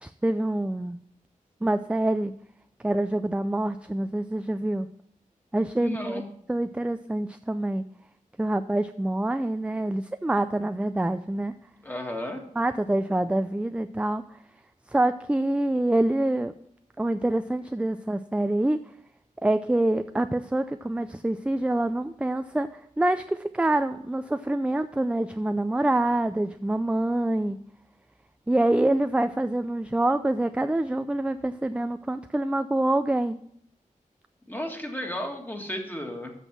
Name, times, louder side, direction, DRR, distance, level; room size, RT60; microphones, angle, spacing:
voice 1, 0.0-1.0 1.6-2.3 2.8-4.9 5.5-6.2 6.5-7.8 8.4-11.6 12.6-14.4 14.9-16.5 17.0-18.8 19.4-27.6 28.5-33.4, right 1 dB, 10° right, 10 dB, 0.4 m, -26 dB
voice 2, 5.8-6.3 11.8-12.4 34.5-36.3, left 1 dB, 15° left, 2 dB, 1.8 m, -33 dB
7.9 x 6.2 x 5.9 m, 0.69 s
cardioid pair, 55°, 14 cm